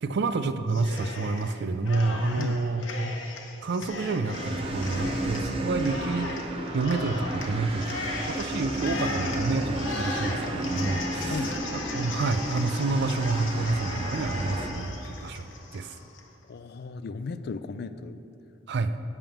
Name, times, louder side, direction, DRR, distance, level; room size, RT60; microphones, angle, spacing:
voice 1, 0.0-3.1 3.6-6.4 6.7-16.0 18.7-18.9, right 3 dB, 60° right, 11 dB, 0.4 m, -29 dB
Cheering, 0.7-1.5 1.8-16.2, left 3 dB, 75° left, 0.9 m, -37 dB
sound 1, 4.3-14.7, right 1 dB, 30° right, 0.7 m, -33 dB
voice 2, 11.3-11.6 16.5-18.2, left 4 dB, 55° left, 11 dB, 0.4 m, -35 dB
10.5 x 3.6 x 7.0 m, 2.6 s
head